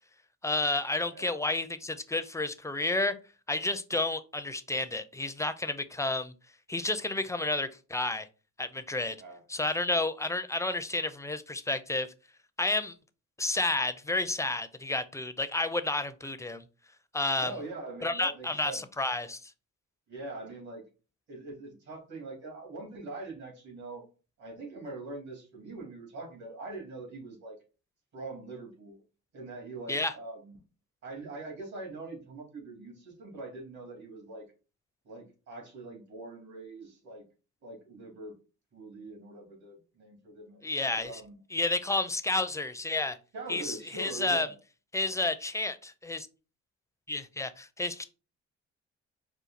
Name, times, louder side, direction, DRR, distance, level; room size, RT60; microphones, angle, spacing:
voice 1, 0.4-3.2 3.5-6.3 6.7-8.3 8.6-9.2 9.5-12.1 12.6-12.9 13.4-16.6 17.1-17.5 18.0-19.5 29.9-30.1 40.6-41.1 41.5-43.2 43.5-44.5 44.9-46.3 47.1-48.0, left 2 dB, 10° left, 11 dB, 0.4 m, -31 dB
voice 2, 1.0-1.4 9.2-9.4 17.4-18.8 20.1-20.8 21.3-24.0 24.4-27.6 28.1-29.0 29.3-30.6 31.0-34.4 35.0-37.2 37.6-38.3 38.7-41.4 43.3-44.6, right 2 dB, 65° right, 1 dB, 2.5 m, -43 dB
5.2 x 2.3 x 4.1 m, 0.33 s
cardioid pair, 90°, 30 cm